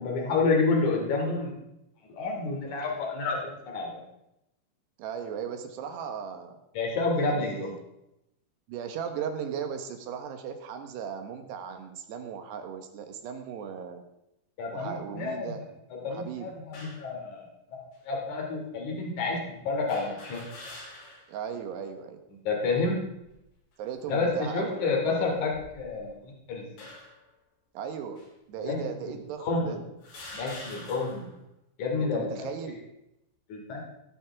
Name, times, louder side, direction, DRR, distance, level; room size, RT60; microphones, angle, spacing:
voice 1, 0.0-1.5 2.1-4.0 6.7-7.7 14.6-15.5 16.0-17.5 18.0-19.4 19.7-20.4 22.5-23.0 24.1-26.9 28.6-29.8 30.3-31.3 31.8-32.5 33.5-34.0, left 3 dB, 50° left, 0 dB, 4.0 m, -29 dB
voice 2, 5.0-6.6 7.2-7.8 8.7-14.0 14.7-15.6 16.0-16.5 21.3-22.2 23.8-24.8 27.8-28.2 28.5-29.8 32.1-32.8, right 7 dB, 90° right, 6 dB, 3.5 m, -37 dB
sound 1, 16.7-17.1 17.9-18.0 19.9-21.3 21.8-21.9 23.0-23.5 24.1-24.4 25.3-26.2 26.8-27.3 28.2-28.3 29.2-29.3 30.0-31.3, left 2 dB, 70° left, 5.6 m, -46 dB
16.5 x 11.5 x 3.6 m, 0.85 s
omnidirectional pair, 4.6 m